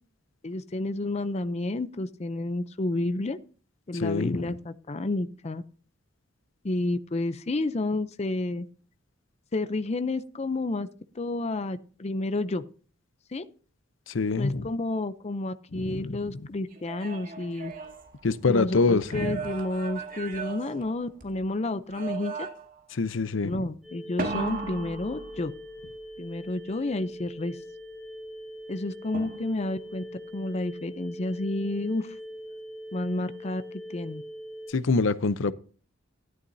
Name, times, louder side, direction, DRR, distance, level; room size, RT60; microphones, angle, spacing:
voice 1, 0.4-3.4 3.9-5.6 6.6-8.7 9.5-10.9 11.2-12.6 13.3-13.4 14.4-17.7 18.5-22.5 23.4-25.5 26.2-27.6 28.7-30.0 30.3-32.1 32.9-33.6 33.9-34.2, left 2 dB, 35° left, 0.5 m, -30 dB
voice 2, 3.9-4.5 14.1-14.7 15.7-16.2 18.2-19.4 22.9-23.7 34.7-35.5, left 3 dB, 75° left, 0.6 m, -25 dB
sound 1, 16.7-18.6 19.0-21.4 21.9-22.8 24.2-25.8 29.1-29.8, right 4 dB, 45° right, 2.0 m, -37 dB
sound 2, 23.8-34.7, equal, ahead, 4.1 m, -42 dB
12.5 x 11.0 x 2.7 m
head